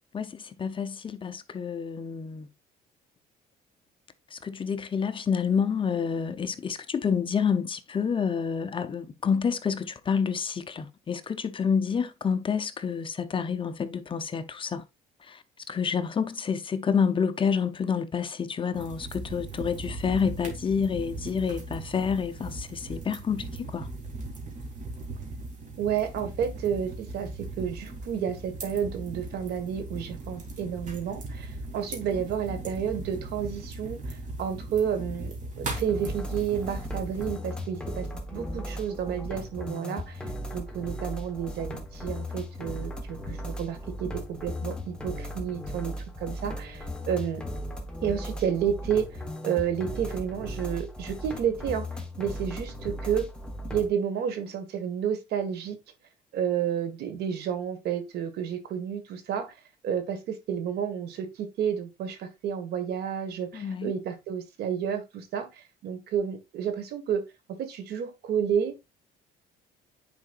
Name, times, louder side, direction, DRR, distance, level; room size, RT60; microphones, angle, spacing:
voice 1, 0.1-2.5 4.3-14.8 15.2-23.9 63.5-63.9, left 6 dB, 30° left, 0.7 m, -28 dB
sound 1, 18.7-37.3, right 2 dB, 50° right, 2.7 m, -38 dB
voice 2, 25.8-27.3 27.6-45.9 46.2-47.4 48.0-51.9 52.2-53.3 53.7-55.8 56.3-59.5 59.8-67.2 67.6-68.7, right 8 dB, 70° right, 1.7 m, -31 dB
sound 2, 35.7-53.9, equal, 5° left, 1.3 m, -37 dB
9.5 x 4.8 x 2.5 m
cardioid pair, 110°, 17 cm